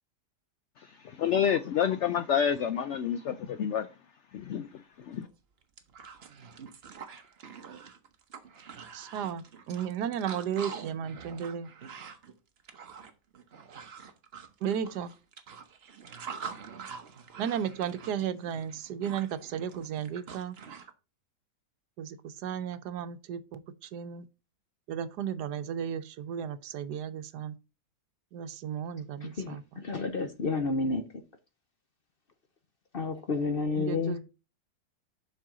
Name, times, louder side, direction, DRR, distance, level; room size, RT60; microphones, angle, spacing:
voice 1, 0.8-4.0 4.3-5.3, left 8 dB, 75° left, 0.6 m, -29 dB
sound 1, 5.2-5.3 5.6-20.9, right 6 dB, 45° right, 1.0 m, -45 dB
voice 2, 8.9-11.7 14.6-15.1 17.4-20.5 22.0-24.3 24.9-27.6 28.3-29.6 33.8-34.2, right 8 dB, 80° right, 1.3 m, -34 dB
voice 3, 29.2-31.0 32.9-34.2, left 3 dB, 45° left, 0.8 m, -30 dB
7.4 x 5.6 x 3.7 m
omnidirectional pair, 1.7 m